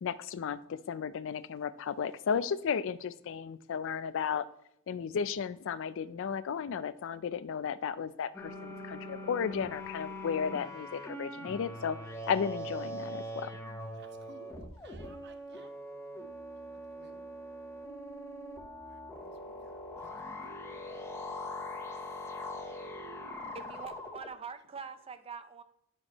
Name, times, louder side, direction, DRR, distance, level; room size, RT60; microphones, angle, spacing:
voice 1, 0.0-4.5 4.9-12.0 12.3-13.5, left 7 dB, 65° left, 15 dB, 0.4 m, -34 dB
sound 1, 8.3-24.3, left 1 dB, 15° left, 0.9 m, -42 dB
voice 2, 13.9-15.7 16.7-17.2 18.9-20.6, right 4 dB, 55° right, 8 dB, 0.8 m, -59 dB
voice 3, 23.5-25.6, right 6 dB, 25° right, 10 dB, 0.5 m, -44 dB
11.0 x 4.4 x 2.9 m, 0.79 s
head